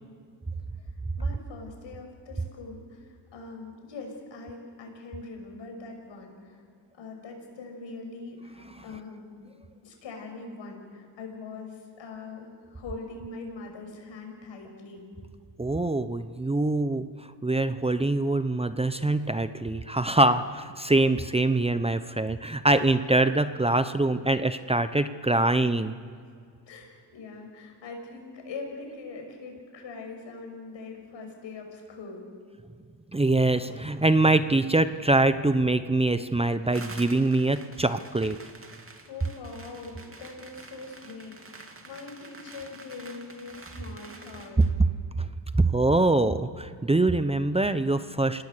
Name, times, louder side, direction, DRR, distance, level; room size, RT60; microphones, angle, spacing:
voice 1, 1.2-6.6 6.9-9.3 9.8-15.1 26.7-32.3 39.1-44.7, left 3 dB, 70° left, 3 dB, 6.4 m, -42 dB
voice 2, 15.6-17.1 17.4-25.9 33.1-38.4 45.5-48.4, right 2 dB, 15° right, 11 dB, 0.9 m, -24 dB
sound 1, 36.7-44.7, right 3 dB, 30° right, 2.7 m, -47 dB
27.5 x 18.5 x 6.8 m, 2.1 s
cardioid pair, 75°, 45 cm